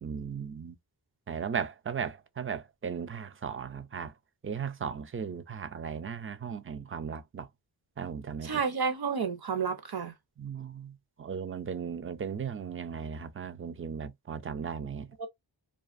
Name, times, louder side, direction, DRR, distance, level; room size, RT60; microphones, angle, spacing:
voice 1, 0.0-0.7 1.3-4.1 4.4-7.5 8.0-8.5 10.4-10.9 11.2-15.1, right 7 dB, 30° right, 0.4 m, -36 dB
voice 2, 8.4-10.1 15.2-15.3, right 5 dB, 55° right, 0.8 m, -30 dB
2.4 x 2.3 x 2.4 m
wide cardioid pair, 65°, 45 cm